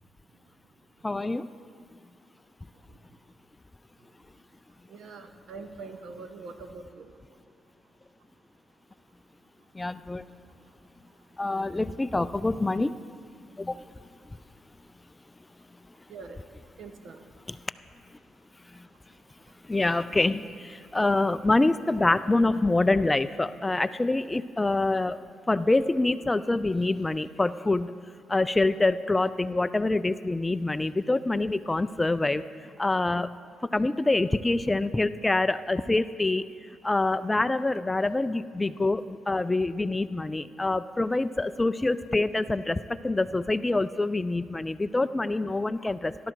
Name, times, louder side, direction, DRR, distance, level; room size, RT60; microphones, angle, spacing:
voice 1, 1.0-1.5 9.7-10.2 11.4-13.0 13.6-13.8 14.3-14.4 17.5-17.6 18.7-18.9 19.6-27.9 28.3-33.4 33.7-36.5 36.8-46.2, left 2 dB, 15° left, 14 dB, 0.3 m, -26 dB
voice 2, 4.9-7.1 16.1-16.4 16.8-17.2, right 4 dB, 65° right, 7 dB, 1.0 m, -43 dB
15.0 x 12.0 x 4.6 m, 2.1 s
cardioid pair, 90°, 0 cm